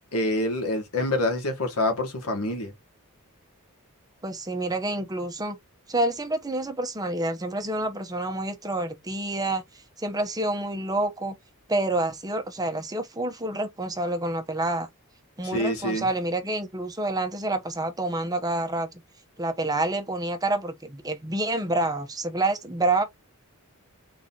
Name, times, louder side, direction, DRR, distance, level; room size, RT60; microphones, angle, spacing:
voice 1, 0.1-2.7 15.5-16.1, left 1 dB, 75° left, 1.9 m, -26 dB
voice 2, 4.2-5.6 5.9-9.6 10.0-11.4 11.7-14.9 15.4-18.9 19.4-23.0, right 2 dB, 15° right, 0.9 m, -28 dB
4.0 x 3.0 x 3.9 m
head